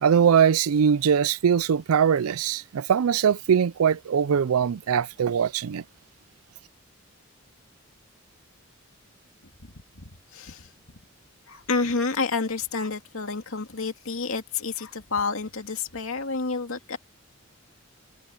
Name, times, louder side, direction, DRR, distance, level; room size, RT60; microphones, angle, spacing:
voice 1, 0.0-5.8, right 7 dB, 85° right, 0.4 m, -21 dB
voice 2, 10.0-10.7 11.5-17.0, left 4 dB, 75° left, 2.3 m, -29 dB
head